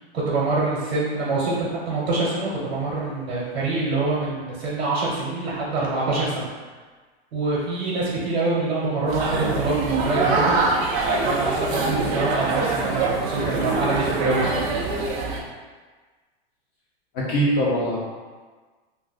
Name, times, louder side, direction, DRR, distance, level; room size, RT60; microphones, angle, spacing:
voice 1, 0.1-6.5 7.3-10.6 11.2-14.4, right 3 dB, 85° right, -5 dB, 1.0 m, -25 dB
sound 1, 9.1-15.4, right 3 dB, 25° right, 0.3 m, -24 dB
voice 2, 17.1-18.0, equal, 30° left, -6 dB, 0.6 m, -22 dB
2.5 x 2.2 x 3.9 m, 1.4 s
supercardioid pair, 140°, 32 cm